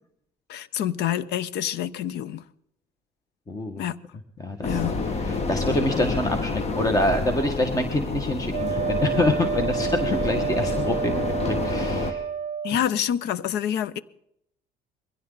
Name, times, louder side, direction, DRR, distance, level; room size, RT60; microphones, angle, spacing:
voice 1, 0.5-2.4 3.8-4.0 4.6-5.0 12.6-14.0, left 10 dB, 80° left, 0.9 m, -27 dB
voice 2, 3.5-3.8 4.4-4.8 5.1-12.3, left 1 dB, 20° left, 1.6 m, -26 dB
sound 1, 4.6-12.1, left 3 dB, 40° left, 1.7 m, -28 dB
Wind instrument woodwind instrument, 8.5-12.8, right 7 dB, 40° right, 0.9 m, -29 dB
22.0 x 16.5 x 4.0 m
cardioid pair, 110°, 17 cm